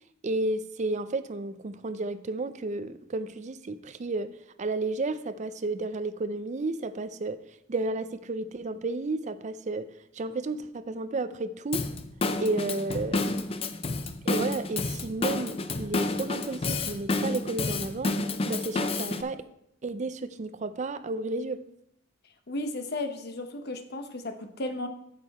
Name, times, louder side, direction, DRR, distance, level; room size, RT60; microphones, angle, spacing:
voice 1, 0.2-7.4 7.7-9.9 10.1-11.9 12.4-13.4 14.2-18.2 18.5-19.4 19.8-21.6, right 2 dB, 40° right, 12 dB, 0.5 m, -32 dB
Drum kit / Drum, 11.7-19.2, left 3 dB, 30° left, 0.5 m, -30 dB
voice 2, 22.5-24.9, left 2 dB, 60° left, 7 dB, 0.9 m, -34 dB
8.7 x 6.8 x 4.2 m, 0.76 s
head